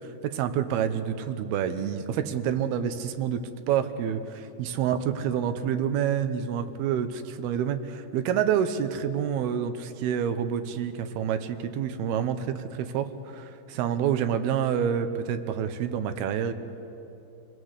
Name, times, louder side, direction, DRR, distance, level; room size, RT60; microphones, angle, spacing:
voice 1, 0.2-3.4 3.7-16.5, right 8 dB, 75° right, 10 dB, 2.8 m, -28 dB
27.0 x 19.0 x 8.2 m, 2.9 s
omnidirectional pair, 4.7 m